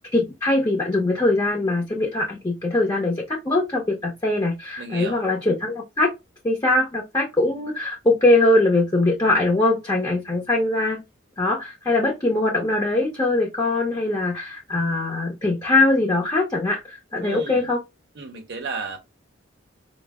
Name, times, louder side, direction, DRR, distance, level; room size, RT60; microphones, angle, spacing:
voice 1, 0.1-6.1 6.4-11.0 11.4-17.8, left 2 dB, 20° left, 0.7 m, -22 dB
voice 2, 4.8-5.2 17.2-17.7 18.2-19.0, right 4 dB, 60° right, 0.6 m, -33 dB
4.4 x 2.0 x 3.4 m
head